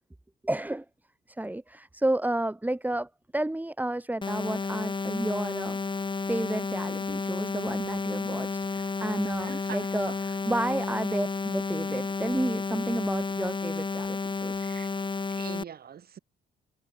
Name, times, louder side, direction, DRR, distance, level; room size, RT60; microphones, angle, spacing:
voice 1, 0.4-0.9 1.3-5.8 6.3-14.7, right 1 dB, 10° right, 2.0 m, -31 dB
sound 1, 4.2-15.6, left 4 dB, 25° left, 1.7 m, -31 dB
voice 2, 9.0-10.2 14.6-15.0 15.3-16.2, right 8 dB, 50° right, 1.6 m, -44 dB
cardioid pair, 90°, 20 cm